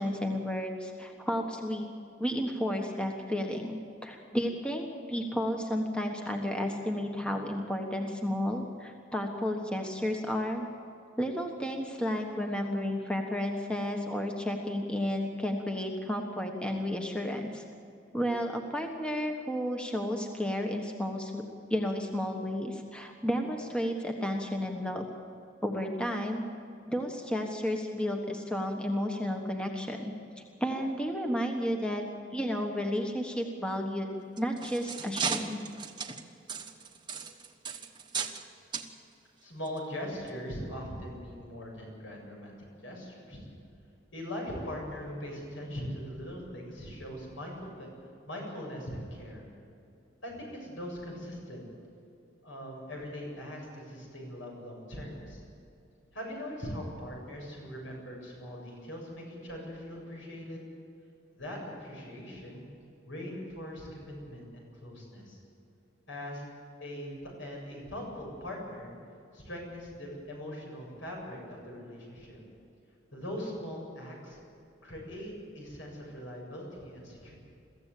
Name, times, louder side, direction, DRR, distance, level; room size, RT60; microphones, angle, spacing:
voice 1, 0.0-1.9 2.2-10.7 11.2-17.6 18.1-21.4 21.7-25.1 25.6-26.4 26.9-32.0 32.3-34.1 34.4-35.6, equal, 5° left, 2 dB, 1.4 m, -32 dB
sound 1, 34.2-38.4 38.7-38.9 39.6-39.8 40.3-40.4, right 6 dB, 25° right, 1.2 m, -36 dB
voice 2, 39.4-42.6 42.8-43.4 44.1-47.9 48.3-49.5 50.2-51.7 52.4-55.4 56.1-60.6 61.3-62.7 63.1-65.4 66.1-66.4 66.8-68.9 69.3-72.4 73.1-74.4 74.8-77.3, equal, 75° left, 0 dB, 7.4 m, -41 dB
23.0 x 15.0 x 8.5 m, 2.6 s
head